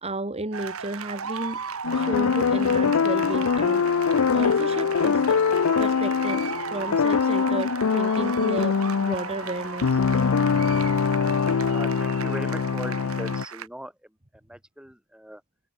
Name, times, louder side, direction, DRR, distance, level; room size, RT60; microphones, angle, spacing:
voice 1, 0.0-1.6 1.9-4.0 4.3-5.4 5.8-10.0, right 2 dB, 30° right, 1.9 m, -33 dB
sound 1, 0.5-13.7, right 6 dB, 80° right, 1.6 m, -36 dB
sound 2, 1.8-13.4, left 5 dB, 75° left, 0.5 m, -23 dB
voice 2, 11.6-14.1 14.4-15.4, equal, 5° right, 6.6 m, -39 dB
head